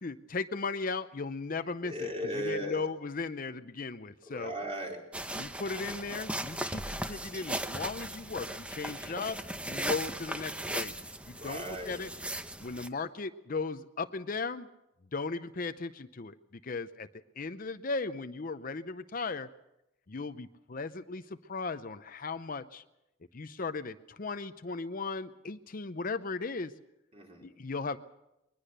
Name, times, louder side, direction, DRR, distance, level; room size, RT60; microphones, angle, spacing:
voice 1, 0.0-1.9 2.3-4.5 5.3-9.4 9.6-10.9 11.3-12.1 12.6-14.7 15.1-16.3 16.6-17.1 17.4-19.5 20.1-22.8 23.3-26.7 27.4-28.0, left 4 dB, 45° left, 11 dB, 0.7 m, -36 dB
voice 2, 1.8-2.8 4.2-5.0 11.2-12.0 27.1-27.4, equal, 30° right, 0 dB, 4.5 m, -37 dB
sound 1, 5.1-12.9, right 1 dB, 5° right, 0.8 m, -37 dB
22.0 x 20.0 x 6.7 m, 0.91 s
head